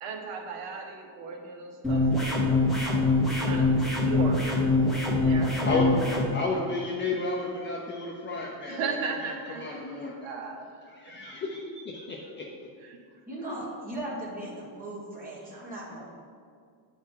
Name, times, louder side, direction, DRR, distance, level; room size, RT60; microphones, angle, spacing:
voice 1, 0.0-3.1 3.4-4.4 4.8-5.7 8.7-11.1 12.8-13.0, right 4 dB, 65° right, 2 dB, 1.0 m, -37 dB
sound 1, 1.8-6.2, left 2 dB, ahead, 0.8 m, -24 dB
voice 2, 6.3-9.0 9.6-10.2 10.9-12.4, left 3 dB, 25° left, -2 dB, 0.4 m, -32 dB
voice 3, 13.3-16.1, right 1 dB, 15° right, -5 dB, 1.6 m, -37 dB
9.5 x 3.5 x 4.4 m, 2.2 s
cardioid pair, 160°, 48 cm